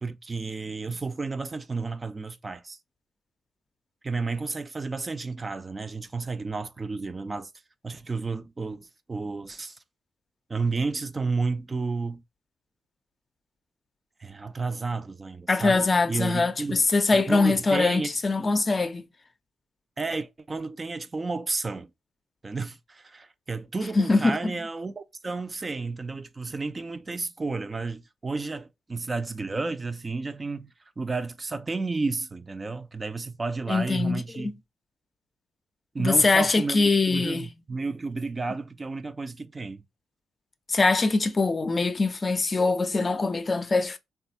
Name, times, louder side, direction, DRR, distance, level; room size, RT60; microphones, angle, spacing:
voice 1, 0.0-2.8 4.0-7.5 7.8-9.8 10.5-12.2 14.2-16.8 17.1-18.1 20.0-21.9 22.4-34.5 35.9-39.8, right 3 dB, 35° right, 0.4 m, -32 dB
voice 2, 15.5-19.1 24.0-24.5 33.7-34.5 36.0-37.5 40.7-44.0, left 3 dB, 35° left, 0.5 m, -23 dB
3.2 x 2.3 x 2.7 m
supercardioid pair, 50°, 0 cm